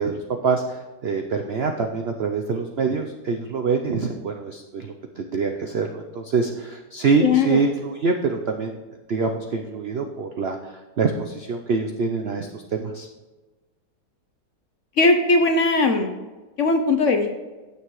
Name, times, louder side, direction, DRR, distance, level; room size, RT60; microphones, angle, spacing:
voice 1, 0.0-8.7 9.1-13.1, right 4 dB, 75° right, 4 dB, 0.5 m, -25 dB
voice 2, 7.2-7.6 15.0-16.1 16.6-17.3, left 3 dB, 60° left, 6 dB, 0.8 m, -19 dB
16.0 x 6.7 x 3.1 m, 1.2 s
omnidirectional pair, 1.9 m